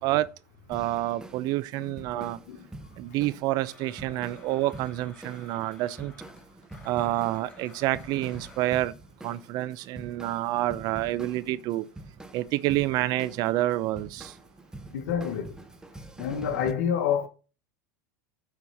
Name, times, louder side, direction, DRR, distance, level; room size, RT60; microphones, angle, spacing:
sound 1, 0.7-16.7, right 2 dB, 10° right, 0.9 m, -46 dB
voice 1, 0.7-2.4 3.0-6.1 6.8-8.9 9.2-11.8 12.3-14.3, right 15 dB, 50° right, 0.7 m, -28 dB
voice 2, 1.8-2.7 14.9-15.6 16.2-17.3, left 8 dB, 80° left, 1.4 m, -29 dB
Domestic sounds home sounds, 3.6-8.7, left 3 dB, 15° left, 2.0 m, -52 dB
6.7 x 4.5 x 5.7 m
supercardioid pair, 115°, 9 cm